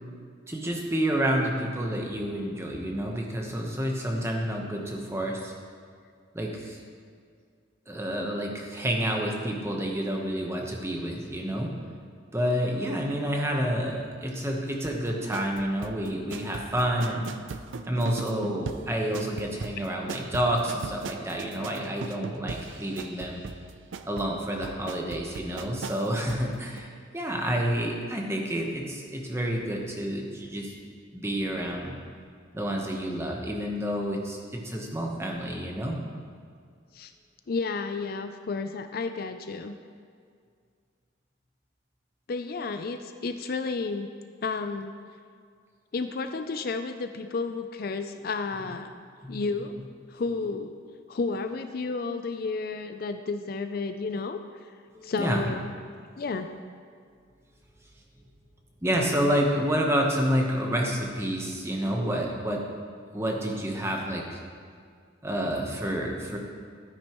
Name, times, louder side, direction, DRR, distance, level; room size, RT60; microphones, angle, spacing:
voice 1, 0.5-5.5 6.3-6.8 7.9-11.7 12.3-17.3 17.8-23.4 24.0-30.7 31.1-31.9 32.5-36.0 49.2-49.4 54.9-55.5 58.8-62.6 63.1-64.4 65.2-66.4, equal, 15° right, 0 dB, 1.0 m, -29 dB
sound 1, 14.8-26.5 26.8-26.9, right 4 dB, 75° right, 0.5 m, -39 dB
voice 2, 37.5-39.7 42.3-44.1 44.4-44.9 45.9-48.9 49.3-49.7 50.1-50.7 51.1-54.4 55.0-55.7 56.2-56.5, left 4 dB, 50° left, 8 dB, 0.4 m, -31 dB
12.5 x 9.6 x 3.0 m, 2.2 s
head